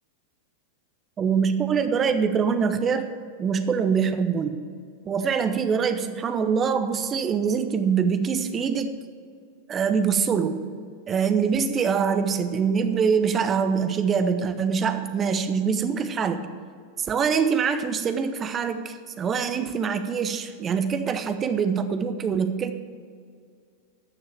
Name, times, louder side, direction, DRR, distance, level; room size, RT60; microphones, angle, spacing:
voice 1, 1.2-3.1 3.4-4.6 5.0-9.0 9.7-10.6 11.1-16.5 17.0-22.7, right 6 dB, 25° right, 9 dB, 0.9 m, -24 dB
12.5 x 6.8 x 7.5 m, 2.2 s
figure-of-eight pair, 90°, 0 cm